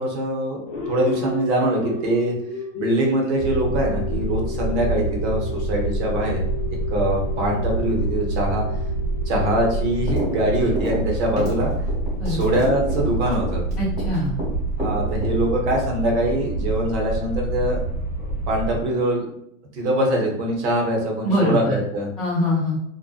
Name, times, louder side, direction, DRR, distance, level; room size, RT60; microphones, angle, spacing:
voice 1, 0.0-2.3 2.7-6.4 6.9-8.6 9.3-11.7 12.3-13.6 14.8-17.8 18.2-19.3 19.7-22.1, right 1 dB, 55° right, 0 dB, 0.8 m, -23 dB
sound 1, 0.7-11.4, left 4 dB, 40° left, 0.7 m, -34 dB
sound 2, 3.4-18.8, right 2 dB, 20° left, 1.0 m, -27 dB
sound 3, 10.1-10.4 10.6-14.5 14.8-15.7, equal, 15° right, 0.8 m, -30 dB
voice 2, 13.8-14.3 21.2-21.8 22.2-22.8, left 1 dB, ahead, -15 dB, 0.3 m, -23 dB
2.5 x 2.1 x 2.3 m, 0.75 s
supercardioid pair, 160°, 40 cm